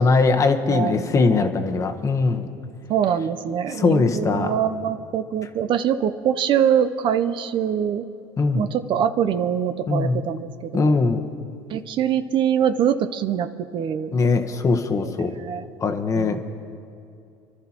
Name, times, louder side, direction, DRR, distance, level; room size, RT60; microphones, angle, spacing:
voice 1, 0.0-2.5 3.8-4.5 8.4-8.7 9.9-10.2 10.7-11.2 14.1-15.3 15.8-16.4, left 4 dB, 30° left, 6 dB, 1.1 m, -20 dB
voice 2, 0.7-1.5 2.9-8.0 8.5-11.1 11.7-14.2 15.0-15.6 16.2-16.4, right 9 dB, 50° right, 10 dB, 0.6 m, -24 dB
29.0 x 12.0 x 3.0 m, 2.5 s
supercardioid pair, 100°, 11 cm